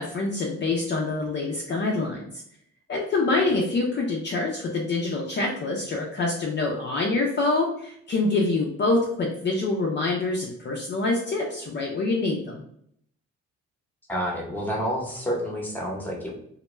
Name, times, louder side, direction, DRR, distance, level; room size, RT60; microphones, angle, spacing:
voice 1, 0.0-2.3 2.9-12.6, left 3 dB, 35° left, -1 dB, 0.5 m, -26 dB
voice 2, 14.1-16.4, equal, 5° left, -1 dB, 0.8 m, -29 dB
2.1 x 2.1 x 3.0 m, 0.70 s
cardioid pair, 90°, 30 cm